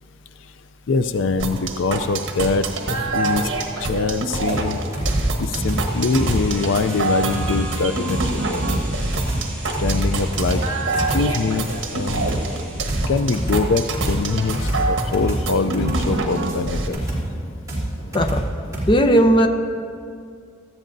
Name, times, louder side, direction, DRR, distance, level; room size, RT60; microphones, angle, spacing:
voice 1, 0.9-3.5 3.8-4.8 5.4-9.1 9.8-10.6 11.1-12.4 13.1-17.0, left 4 dB, 70° left, 10 dB, 0.4 m, -23 dB
sound 1, 1.4-16.9, right 2 dB, 75° right, 1.3 m, -26 dB
sound 2, 4.5-18.9, right 1 dB, 15° right, 3.4 m, -27 dB
sound 3, 5.6-15.4 15.7-15.8, right 1 dB, 10° left, 2.6 m, -41 dB
voice 2, 18.1-18.5 18.9-19.5, right 1 dB, 25° left, 6 dB, 0.7 m, -16 dB
18.0 x 13.5 x 2.7 m, 2.3 s
head